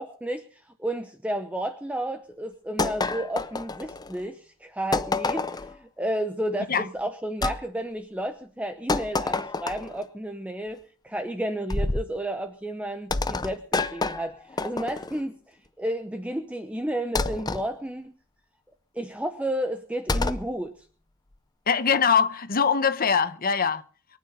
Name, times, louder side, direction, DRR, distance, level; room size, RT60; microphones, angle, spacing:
voice 1, 0.0-10.8 11.0-18.1 18.9-20.7, right 1 dB, 5° right, 0.9 m, -32 dB
sound 1, 2.8-4.2 4.9-5.8 7.4-7.6 8.9-10.0 11.7-12.1 13.1-15.2 17.2-17.7 20.1-20.5, left 3 dB, 20° left, 0.6 m, -28 dB
voice 2, 21.7-23.8, left 6 dB, 45° left, 1.0 m, -22 dB
23.0 x 9.4 x 5.4 m
head